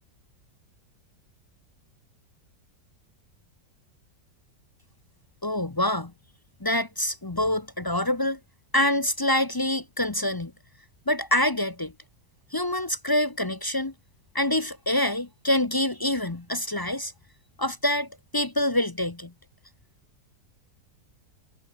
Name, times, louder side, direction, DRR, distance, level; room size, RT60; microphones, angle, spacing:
voice 1, 5.4-6.1 6.6-8.4 8.7-10.5 11.1-11.9 12.5-13.9 14.3-17.1 17.6-19.3, left 1 dB, 25° left, 0.5 m, -26 dB
omnidirectional pair, 2.0 m